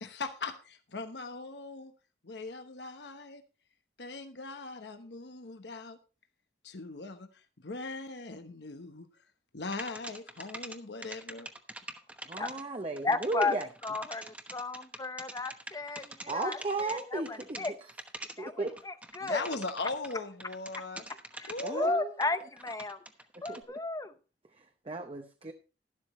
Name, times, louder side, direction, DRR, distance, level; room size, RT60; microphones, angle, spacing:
voice 1, 0.0-1.9 2.2-3.4 4.0-6.0 6.6-9.1 9.5-11.5 19.2-21.0 21.4-21.9, left 3 dB, 75° left, 7 dB, 1.1 m, -39 dB
sound 1, 9.7-10.8 11.0-20.1 20.4-21.7 22.2-23.6, right 1 dB, 10° right, 1.0 m, -44 dB
voice 2, 12.3-13.6 16.3-17.6 18.4-18.7 21.6-22.1 23.5-23.6 24.9-25.5, right 3 dB, 35° right, 5 dB, 0.8 m, -35 dB
voice 3, 13.0-17.7 18.4-19.5 21.3-23.0 23.4-24.1, left 3 dB, 20° left, 11 dB, 0.8 m, -34 dB
12.0 x 12.0 x 3.1 m, 0.34 s
head